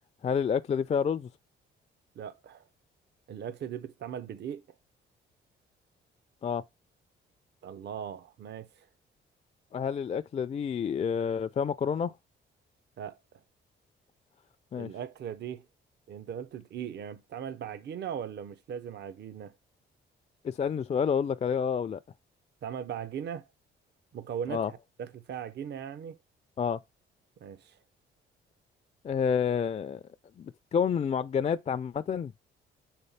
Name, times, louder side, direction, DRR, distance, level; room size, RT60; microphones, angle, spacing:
voice 1, 0.2-1.3 6.4-6.6 9.7-12.1 14.7-14.9 20.4-22.0 24.5-24.7 26.6-26.8 29.0-30.0 30.4-32.3, left 7 dB, 35° left, 0.4 m, -29 dB
voice 2, 2.2-2.7 3.3-4.6 7.6-8.9 13.0-13.2 14.8-15.7 16.1-19.5 22.6-23.5 24.1-26.2 27.4-27.8, right 8 dB, 60° right, 0.7 m, -39 dB
6.4 x 4.4 x 5.5 m
cardioid pair, 90°, 20 cm